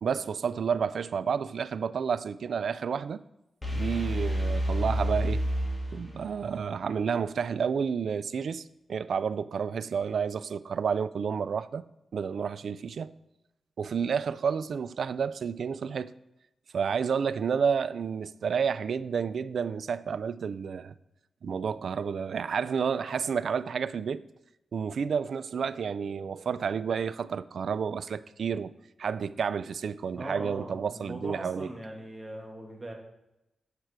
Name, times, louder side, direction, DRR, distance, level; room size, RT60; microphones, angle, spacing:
voice 1, 0.0-3.2 3.7-5.5 5.9-11.8 12.1-13.1 13.8-16.1 16.7-20.9 21.4-24.2 24.7-28.7 29.0-31.7, right 6 dB, 70° right, 0.3 m, -30 dB
sound 1, 3.6-6.5, equal, 25° left, 1.9 m, -29 dB
voice 2, 30.1-32.9, right 1 dB, 15° right, 1.6 m, -40 dB
8.1 x 4.5 x 4.8 m
cardioid pair, 70°, 0 cm